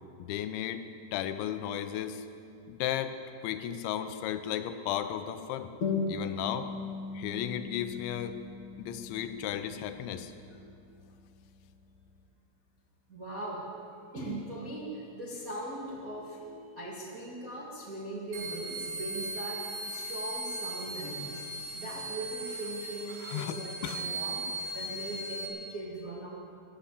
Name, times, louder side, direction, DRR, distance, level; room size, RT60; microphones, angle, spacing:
voice 1, 0.2-0.8 1.1-2.3 2.7-5.7 6.1-6.7 7.1-8.4 8.8-10.3 23.3-24.0, left 11 dB, 85° left, 10 dB, 3.1 m, -34 dB
sound 1, 5.8-10.8, left 4 dB, 45° left, 3.2 m, -38 dB
voice 2, 13.1-13.6 14.1-21.4 21.7-24.5 24.7-26.3, right 1 dB, 80° right, -6 dB, 0.7 m, -40 dB
sound 2, 18.3-25.5, right 2 dB, 60° right, 2.4 m, -38 dB
14.0 x 12.0 x 8.3 m, 2.5 s
omnidirectional pair, 5.2 m